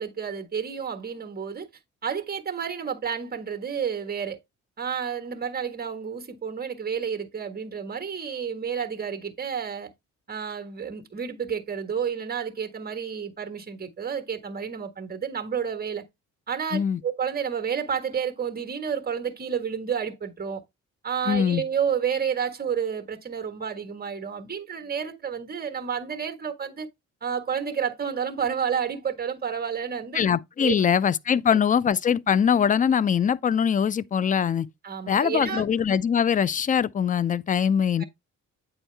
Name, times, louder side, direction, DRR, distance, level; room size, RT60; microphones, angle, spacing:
voice 1, 0.0-1.7 2.0-4.4 4.8-9.9 10.3-16.0 16.5-20.6 21.0-26.9 27.2-30.3 30.6-30.7 34.8-35.6 38.0-38.1, right 7 dB, 30° right, 1.5 m, -30 dB
voice 2, 21.2-21.6 30.1-34.7 35.1-38.0, left 8 dB, 25° left, 0.4 m, -22 dB
8.7 x 4.5 x 3.3 m
cardioid pair, 90°, 30 cm